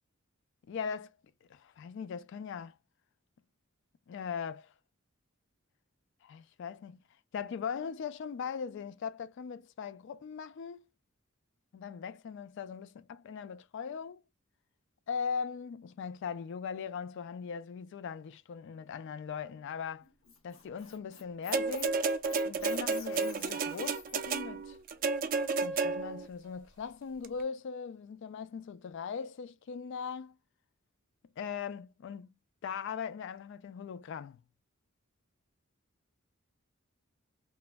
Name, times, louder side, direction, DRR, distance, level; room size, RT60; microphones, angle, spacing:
voice 1, 0.7-1.2 1.5-2.7 4.1-4.7 6.2-7.0 7.3-10.9 11.7-14.2 15.1-20.1 20.4-22.0 22.5-24.8 25.4-30.4 31.4-32.3 32.6-34.4, left 6 dB, 60° left, 0.3 m, -40 dB
Squeak, 20.0-24.2, left 5 dB, 90° left, 1.2 m, -50 dB
sound 1, 21.5-26.3 27.2-27.3, right 4 dB, 40° right, 0.4 m, -32 dB
3.0 x 2.2 x 2.4 m
head